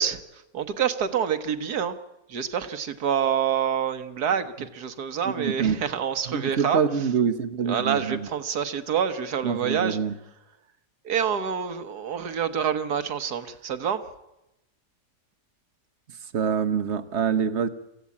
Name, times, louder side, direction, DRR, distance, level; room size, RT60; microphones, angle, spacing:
voice 1, 0.0-2.0 2.3-7.1 7.6-10.0 11.0-14.0, right 8 dB, 70° right, 10 dB, 1.7 m, -27 dB
voice 2, 5.4-5.8 6.3-8.2 9.4-10.1 16.3-17.7, right 7 dB, 45° right, 10 dB, 1.2 m, -25 dB
26.0 x 15.0 x 8.5 m, 0.91 s
omnidirectional pair, 1.8 m